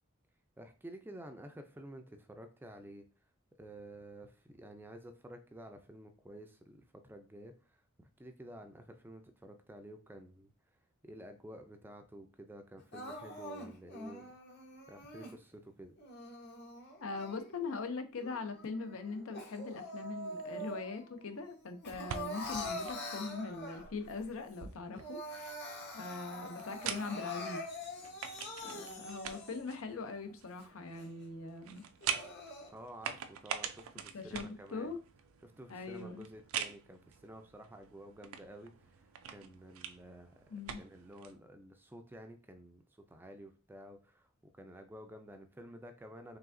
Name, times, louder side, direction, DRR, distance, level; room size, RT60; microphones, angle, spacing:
voice 1, 0.6-3.0 3.6-10.5 11.0-14.3 14.9-16.0 32.7-34.9 35.4-40.4 40.8-42.8 43.1-44.3 44.5-46.4, right 1 dB, 10° right, 0.4 m, -51 dB
Crying sobbing, 12.9-15.3 16.0-17.8 18.2-21.1 21.4-24.1 24.5-24.6 24.9-29.8 30.3-30.4 30.9-31.0 31.8-32.7, left 1 dB, 50° left, 1.0 m, -44 dB
voice 2, 17.0-25.6 25.9-27.7 28.6-31.8 34.1-35.0 35.7-36.3 40.5-40.8, left 4 dB, 80° left, 0.6 m, -41 dB
sound 1, 21.9-41.4, right 8 dB, 80° right, 0.4 m, -45 dB
4.7 x 3.4 x 2.6 m
head